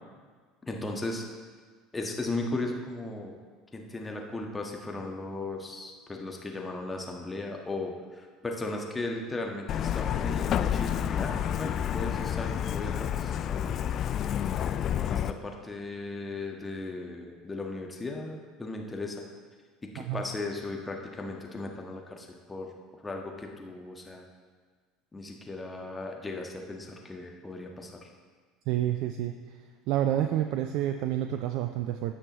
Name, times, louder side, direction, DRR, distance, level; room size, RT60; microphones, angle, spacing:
voice 1, 0.7-1.2 1.9-3.4 3.7-13.9 14.9-19.2 19.8-22.7 23.0-24.2 25.1-28.1, left 2 dB, 15° left, 1 dB, 1.4 m, -37 dB
Truck, 9.7-15.3, left 9 dB, 45° left, 0.3 m, -29 dB
voice 2, 28.7-29.6 29.9-32.1, right 12 dB, 55° right, 7 dB, 0.4 m, -29 dB
16.0 x 6.4 x 3.1 m, 1.5 s
figure-of-eight pair, 65°, 0 cm